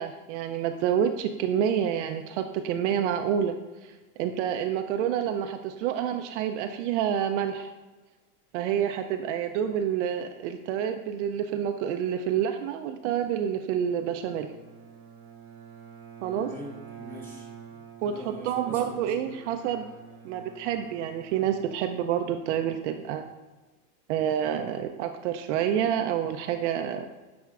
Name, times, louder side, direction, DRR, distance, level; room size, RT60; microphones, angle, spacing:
voice 1, 0.0-3.5 3.8-3.9 4.2-7.7 8.5-14.5 16.2-16.5 18.0-19.9 20.2-23.2 24.1-27.0, right 9 dB, 60° right, 6 dB, 0.5 m, -28 dB
Bowed string instrument, 14.0-22.5, right 7 dB, 90° right, 1.2 m, -48 dB
voice 2, 16.5-19.5, equal, 5° left, -4 dB, 1.2 m, -44 dB
9.3 x 4.3 x 2.4 m, 1.2 s
supercardioid pair, 140°, 42 cm